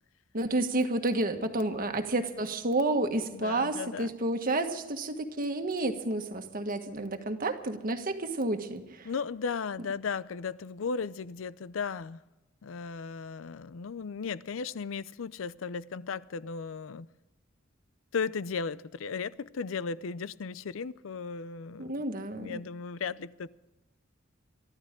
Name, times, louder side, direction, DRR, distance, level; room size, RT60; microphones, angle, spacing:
voice 1, 0.3-9.1 21.8-22.6, right 2 dB, 45° right, 1.6 m, -30 dB
voice 2, 3.3-4.1 9.0-12.2 12.6-17.1 18.1-21.9 22.4-23.5, left 5 dB, 85° left, 0.5 m, -36 dB
23.5 x 13.5 x 3.7 m
head